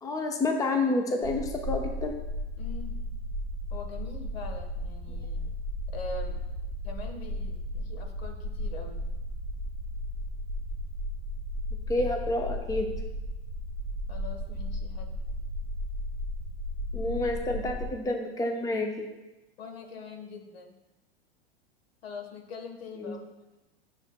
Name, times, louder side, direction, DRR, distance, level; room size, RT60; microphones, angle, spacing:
voice 1, 0.0-2.1 11.9-12.9 16.9-19.1 23.0-23.2, left 2 dB, 10° left, 4 dB, 0.7 m, -29 dB
sound 1, 1.2-17.9, equal, 40° left, 1.8 m, -35 dB
voice 2, 2.6-3.0 3.7-5.4 5.9-6.4 6.8-9.0 14.1-15.1 19.6-20.7 22.0-23.2, left 3 dB, 70° left, 4 dB, 1.3 m, -43 dB
9.9 x 6.5 x 2.2 m, 1.0 s
hypercardioid pair, 100°, 32 cm